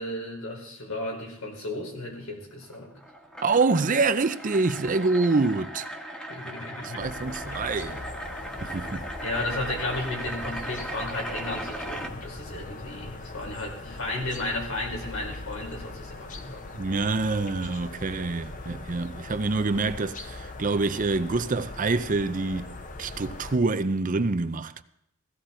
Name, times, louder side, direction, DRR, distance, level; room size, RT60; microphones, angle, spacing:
voice 1, 0.0-2.9 6.3-7.1 9.2-16.6, left 2 dB, 85° left, 4.5 m, -34 dB
sound 1, 2.6-12.1, right 1 dB, 5° left, 1.3 m, -38 dB
voice 2, 3.4-5.9 6.8-8.0 8.6-9.1 16.7-24.8, right 3 dB, 40° right, 0.6 m, -26 dB
sound 2, 7.0-23.6, left 2 dB, 40° left, 1.0 m, -41 dB
16.5 x 14.5 x 4.4 m
head